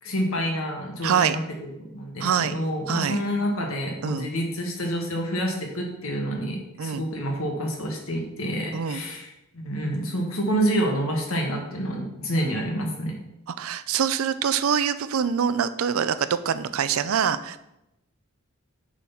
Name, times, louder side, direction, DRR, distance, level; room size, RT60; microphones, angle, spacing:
voice 1, 0.0-13.2, equal, 70° left, 1 dB, 1.6 m, -28 dB
voice 2, 1.0-1.4 2.2-2.6 2.9-3.2 4.0-4.3 6.8-7.0 8.7-9.0 13.5-17.6, right 7 dB, 75° right, 14 dB, 0.4 m, -25 dB
7.3 x 4.0 x 5.7 m, 0.87 s
head